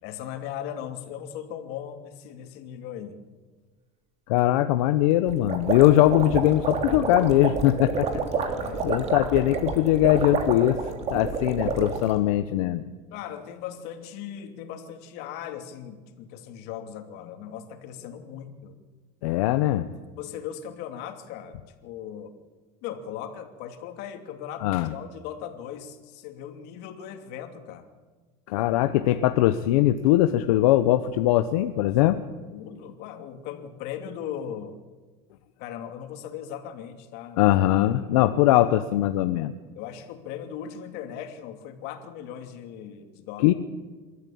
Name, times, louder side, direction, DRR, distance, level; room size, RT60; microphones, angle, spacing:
voice 1, 0.0-3.2 8.5-9.1 13.1-18.8 20.2-22.3 22.8-27.9 32.5-34.8 35.6-37.5 39.7-43.5, left 9 dB, 65° left, 6 dB, 2.7 m, -38 dB
voice 2, 4.3-8.1 8.8-10.8 11.1-12.8 19.2-19.9 24.6-24.9 28.5-32.2 37.4-39.5 43.4-43.5, left 14 dB, 85° left, 9 dB, 1.0 m, -21 dB
sound 1, 5.3-12.1, right 4 dB, 40° right, 3.1 m, -29 dB
27.0 x 13.0 x 8.7 m, 1.4 s
supercardioid pair, 120°, 18 cm